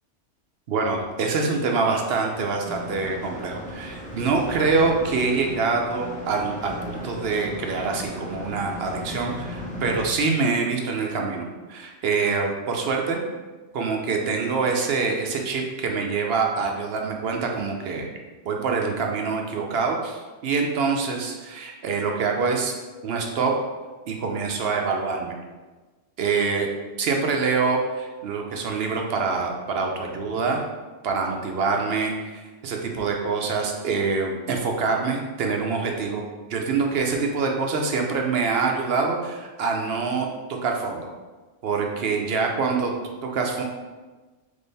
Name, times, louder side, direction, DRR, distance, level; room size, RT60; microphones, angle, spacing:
voice 1, 0.7-13.2 13.7-18.1 18.4-22.8 23.0-23.5 24.1-25.3 26.2-26.7 27.0-30.6 31.0-36.2 36.5-41.1 41.6-43.6, right 4 dB, 65° right, 1 dB, 0.8 m, -25 dB
sound 1, 2.7-10.1, left 1 dB, 10° left, 0.4 m, -36 dB
3.6 x 3.4 x 4.0 m, 1.3 s
omnidirectional pair, 1.2 m